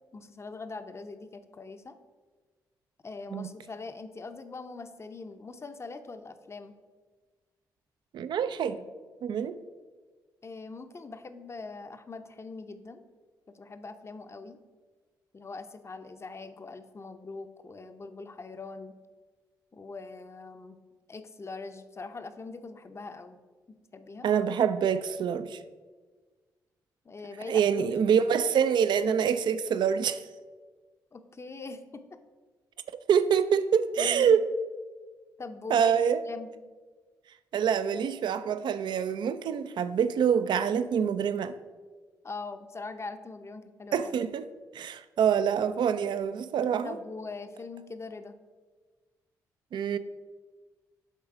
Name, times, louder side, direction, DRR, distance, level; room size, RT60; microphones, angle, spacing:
voice 1, 0.1-2.0 3.0-6.8 10.4-13.0 13.5-14.6 15.3-19.0 19.7-20.8 21.1-23.4 23.7-24.3 27.0-28.1 31.1-32.2 34.0-34.4 35.4-36.5 42.2-44.1 46.8-48.4, left 3 dB, 35° left, 0.6 m, -42 dB
voice 2, 8.1-8.8 9.2-9.6 24.2-25.6 27.5-30.2 33.1-34.4 35.7-36.2 37.5-41.5 43.9-44.5 44.7-47.0 49.7-50.0, right 7 dB, 65° right, 0.4 m, -26 dB
7.3 x 3.9 x 4.8 m
supercardioid pair, 50°, 8 cm